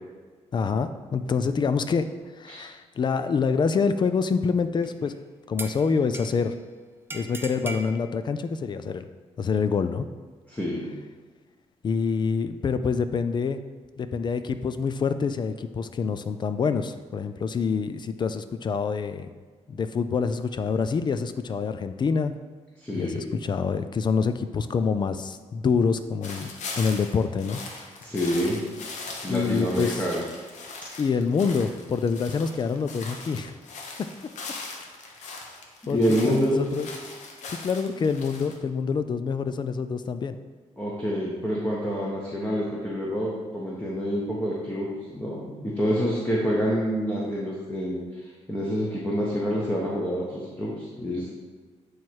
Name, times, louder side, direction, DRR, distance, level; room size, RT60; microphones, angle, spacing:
voice 1, 0.5-2.1 2.4-5.1 5.5-6.6 7.1-9.1 9.4-10.1 11.8-13.6 14.0-19.3 19.7-22.3 22.9-26.5 26.8-27.6 29.2-30.0 31.0-33.5 34.0-34.1 35.9-36.9 37.6-40.4, left 5 dB, 40° left, 11 dB, 0.4 m, -26 dB
sound 1, 4.8-5.1 5.6-6.6 7.1-7.9, right 2 dB, 20° right, 0.6 m, -38 dB
voice 2, 10.5-10.9 22.8-23.2 28.0-28.6 29.2-30.2 35.8-36.6 40.8-51.3, equal, 10° left, -5 dB, 1.2 m, -27 dB
sound 2, 26.2-38.6, left 3 dB, 85° left, 1.0 m, -40 dB
9.0 x 3.2 x 4.5 m, 1.4 s
cardioid pair, 90°, 12 cm